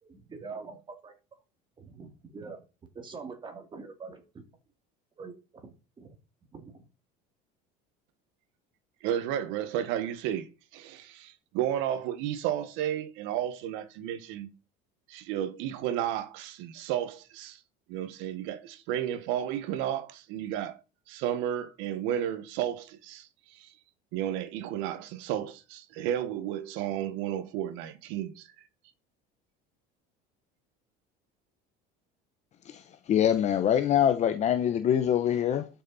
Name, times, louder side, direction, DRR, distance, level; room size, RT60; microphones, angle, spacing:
voice 1, 0.0-1.1 1.8-2.6 2.9-4.4 5.2-6.1 6.5-6.9, right 4 dB, 25° right, 2.5 m, -44 dB
voice 2, 9.0-10.5 10.7-14.5 15.1-17.6 17.9-20.8 21.1-23.7 24.1-28.5, right 11 dB, 70° right, 1.5 m, -32 dB
voice 3, 33.1-35.7, left 9 dB, 35° left, 0.9 m, -24 dB
12.5 x 6.5 x 4.2 m
cardioid pair, 150°, 20 cm